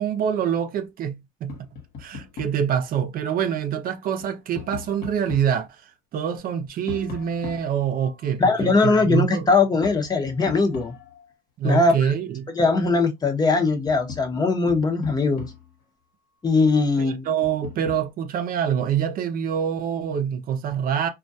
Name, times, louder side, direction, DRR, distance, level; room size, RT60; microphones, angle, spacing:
voice 1, 0.0-1.6 2.0-9.5 11.6-12.5 17.0-21.1, right 8 dB, 60° right, 0.5 m, -25 dB
Tap, 1.5-2.7 4.0-5.6 6.9-8.3 9.8-11.3 13.2-13.3 13.6-15.8 17.4-18.1, left 7 dB, 75° left, 1.1 m, -39 dB
voice 2, 8.4-10.9 11.6-12.1 12.5-15.5 16.4-17.2, left 3 dB, 25° left, 0.7 m, -20 dB
2.3 x 2.1 x 2.6 m
cardioid pair, 110°, 17 cm